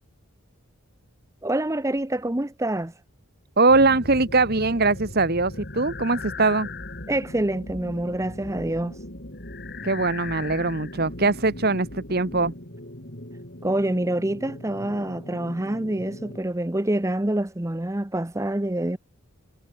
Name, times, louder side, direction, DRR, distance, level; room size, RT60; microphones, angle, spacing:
voice 1, 1.4-3.0 7.1-9.0 13.6-19.0, right 1 dB, 15° right, 0.7 m, -26 dB
voice 2, 3.6-6.7 9.8-12.5, right 3 dB, 45° right, 1.4 m, -21 dB
sound 1, 3.7-16.4, left 2 dB, 45° left, 4.8 m, -38 dB
head